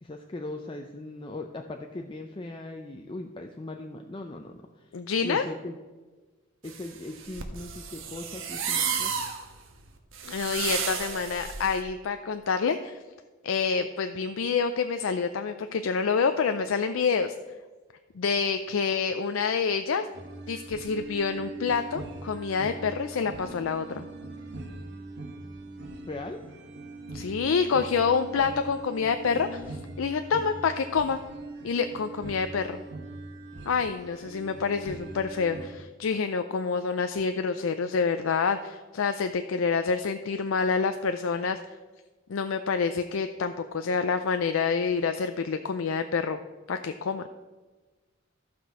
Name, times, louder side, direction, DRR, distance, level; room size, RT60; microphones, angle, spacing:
voice 1, 0.0-4.9 5.2-5.7 6.6-9.1 26.1-26.4, left 2 dB, 25° left, 3 dB, 0.5 m, -39 dB
voice 2, 4.9-5.4 10.2-13.0 13.4-17.3 18.2-20.0 20.5-24.1 27.1-31.2 31.6-32.8 33.7-41.6 42.3-46.4 46.7-47.2, left 5 dB, 85° left, 8 dB, 0.5 m, -27 dB
sound 1, 6.7-11.8, right 7 dB, 75° right, 1.2 m, -32 dB
sound 2, 20.1-35.7, right 2 dB, 60° right, 1.5 m, -41 dB
14.0 x 6.0 x 4.7 m, 1.3 s
head